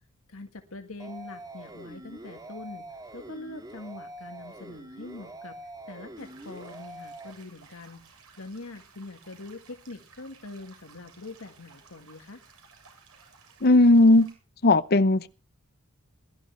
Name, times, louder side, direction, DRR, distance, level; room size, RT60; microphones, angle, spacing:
voice 1, 0.3-12.4, left 2 dB, 70° left, 1.8 m, -43 dB
sound 1, 1.0-7.3, right 1 dB, 20° right, 2.2 m, -44 dB
sound 2, 6.2-14.3, right 5 dB, 85° right, 7.6 m, -56 dB
voice 2, 13.6-14.3 14.6-15.3, left 2 dB, 50° left, 0.8 m, -17 dB
22.0 x 13.0 x 3.3 m
head